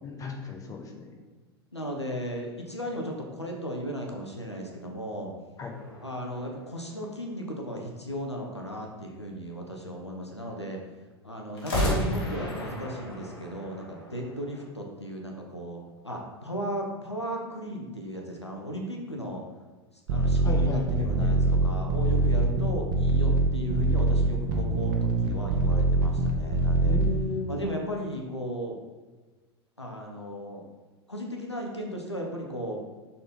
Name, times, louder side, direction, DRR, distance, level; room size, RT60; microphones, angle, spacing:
voice 1, 0.0-1.0 5.6-5.7 20.4-21.3 26.9-27.6, left 4 dB, 25° left, 1 dB, 1.3 m, -34 dB
voice 2, 1.7-5.3 6.0-10.8 11.2-19.4 20.1-27.0 27.5-28.8 29.8-30.6 31.1-32.8, equal, 90° left, 1 dB, 1.0 m, -36 dB
sound 1, 5.7-7.5 11.5-14.7, left 1 dB, 60° left, 1.8 m, -33 dB
sound 2, 20.1-27.1, right 3 dB, 55° right, 1.1 m, -23 dB
6.5 x 4.2 x 5.3 m, 1.3 s
figure-of-eight pair, 85°, 14 cm